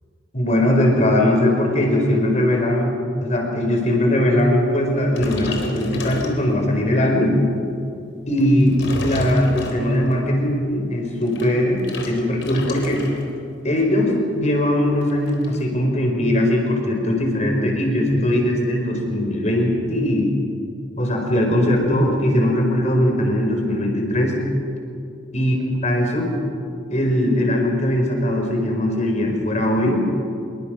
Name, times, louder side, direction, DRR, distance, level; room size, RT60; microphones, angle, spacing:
voice 1, 0.3-7.3 8.3-13.0 13.6-20.3 21.0-24.4 25.3-25.5 25.8-26.3 26.9-30.0, left 1 dB, 35° left, 2 dB, 4.8 m, -20 dB
sound 1, 5.1-6.8 7.4-7.6 8.4-10.2 11.0-13.3 13.6-13.9 14.2-14.3 14.5-15.6, left 1 dB, 80° left, 3.9 m, -32 dB
26.5 x 22.5 x 6.3 m, 2.6 s
head